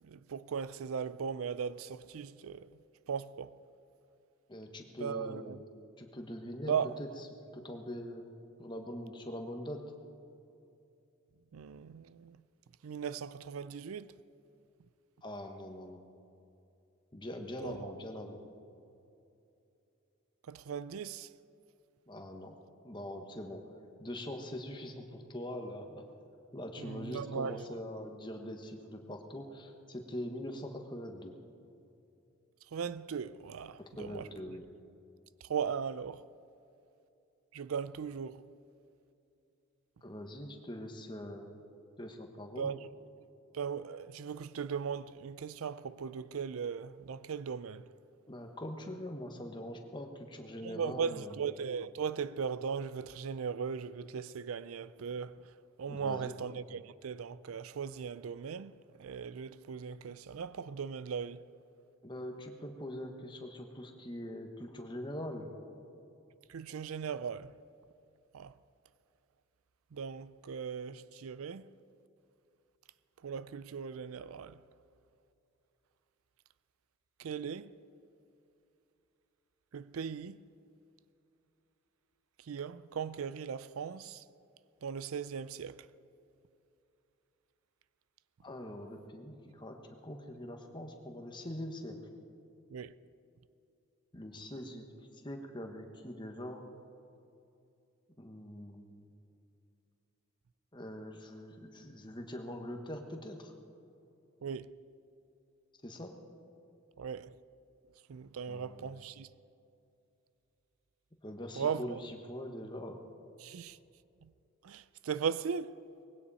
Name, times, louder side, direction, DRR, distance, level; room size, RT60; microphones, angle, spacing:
voice 1, 0.0-2.7 3.1-3.6 5.0-5.6 6.7-7.0 11.5-12.4 12.8-14.1 17.6-17.9 20.5-21.3 26.8-27.8 32.7-34.3 35.4-36.2 37.5-38.5 42.6-42.9 43.5-47.9 50.6-55.5 55.8-61.4 66.5-67.5 68.3-68.5 69.9-71.7 73.2-74.6 77.2-77.7 79.7-80.4 82.4-84.2 84.8-85.9 92.7-92.9 104.4-104.7 107.0-107.3 108.1-109.3 111.6-112.0 113.4-113.8 114.2-114.3 114.6-115.8, right 6 dB, 90° right, 0.4 m, -38 dB
voice 2, 4.5-5.6 6.0-7.1 7.5-8.3 8.6-9.8 15.2-16.0 17.1-18.4 22.1-22.6 22.8-23.6 24.0-26.0 26.5-31.3 34.0-34.6 40.0-41.6 42.0-42.7 48.3-51.3 55.9-56.3 62.0-65.5 88.4-89.8 90.0-92.0 94.1-94.9 95.2-96.6 98.2-99.0 100.7-103.5 105.8-106.1 108.5-109.0 111.2-113.0, left 1 dB, 20° left, 1.3 m, -43 dB
20.5 x 16.5 x 4.2 m
head